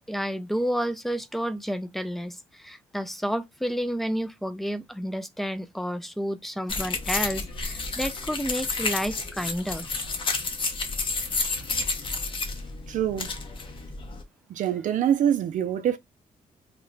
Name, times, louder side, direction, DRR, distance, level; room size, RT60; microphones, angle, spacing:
voice 1, 0.1-9.9, equal, ahead, 0.3 m, -30 dB
sound 1, 6.7-14.2, left 3 dB, 40° left, 0.7 m, -31 dB
voice 2, 12.9-13.3 14.5-16.0, right 10 dB, 65° right, 0.4 m, -25 dB
2.9 x 2.1 x 3.8 m
cardioid pair, 115°, 14 cm